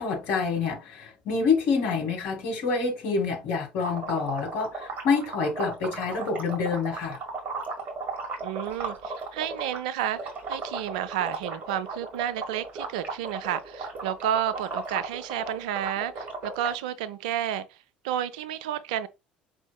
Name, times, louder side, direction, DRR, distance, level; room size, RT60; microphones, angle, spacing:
voice 1, 0.0-7.2, left 5 dB, 60° left, 1.6 m, -27 dB
sound 1, 3.8-9.8 10.1-16.7, right 4 dB, 40° right, 1.8 m, -35 dB
voice 2, 8.4-10.2 10.5-17.6 18.0-19.1, right 10 dB, 65° right, 0.4 m, -31 dB
5.0 x 3.5 x 2.2 m
figure-of-eight pair, 55°, 4 cm